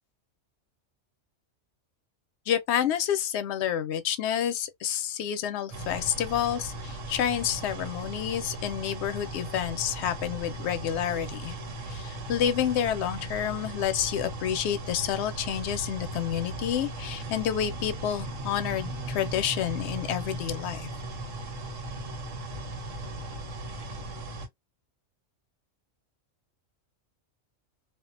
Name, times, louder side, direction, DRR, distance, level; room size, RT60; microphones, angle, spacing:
voice 1, 2.5-11.5 11.9-20.9, left 10 dB, 65° left, 0.8 m, -29 dB
sound 1, 5.7-24.5, right 1 dB, 85° right, 1.1 m, -37 dB
2.4 x 2.1 x 2.4 m
omnidirectional pair, 1.3 m